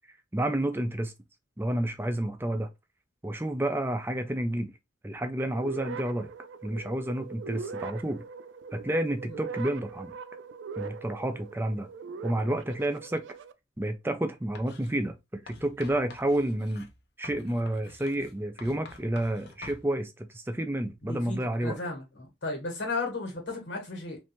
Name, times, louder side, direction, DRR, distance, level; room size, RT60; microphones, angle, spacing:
voice 1, 0.3-1.1 1.6-2.7 3.2-4.7 5.0-6.3 6.6-8.2 8.7-10.1 10.8-11.9 12.2-13.2 13.8-16.9 17.2-21.8, right 1 dB, 10° right, 0.4 m, -30 dB
sound 1, 5.5-13.5, right 5 dB, 80° right, 0.4 m, -41 dB
Writing, 14.5-14.9 15.5-19.8, left 3 dB, 55° left, 0.6 m, -49 dB
voice 2, 21.0-24.2, left 3 dB, 75° left, 1.4 m, -35 dB
3.2 x 2.6 x 2.9 m
head